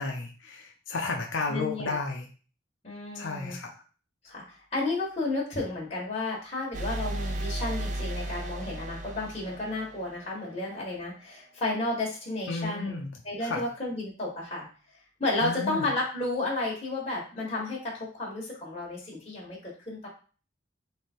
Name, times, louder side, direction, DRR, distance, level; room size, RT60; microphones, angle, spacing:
voice 1, 0.0-2.3 3.2-3.7 12.5-13.1 13.4-13.6 15.4-15.9, left 3 dB, 75° left, 1 dB, 0.7 m, -32 dB
voice 2, 1.5-2.0 2.8-3.6 4.2-12.9 13.2-14.6 15.2-20.1, left 2 dB, 30° left, -6 dB, 1.4 m, -32 dB
sound 1, 6.7-10.5, right 1 dB, 40° right, 0.4 m, -34 dB
3.5 x 3.3 x 4.4 m, 0.37 s
head